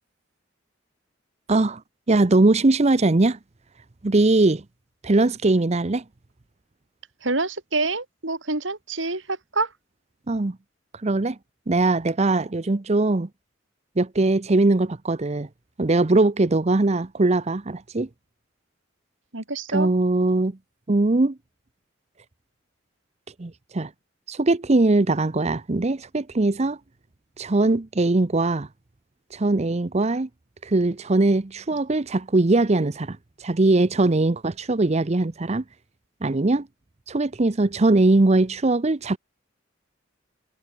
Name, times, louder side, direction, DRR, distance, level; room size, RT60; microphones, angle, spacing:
voice 1, 1.5-1.8 2.1-3.4 4.0-4.6 5.0-6.0 10.3-10.6 11.0-11.4 11.7-13.3 14.0-15.5 15.8-18.1 19.7-20.6 20.9-21.4 23.4-23.9 24.3-26.8 27.4-28.7 29.3-30.3 30.6-35.6 36.2-36.7 37.1-39.2, right 2 dB, 35° right, 0.7 m, -21 dB
voice 2, 7.2-9.7 19.3-19.9, right 3 dB, 80° right, 4.4 m, -27 dB
head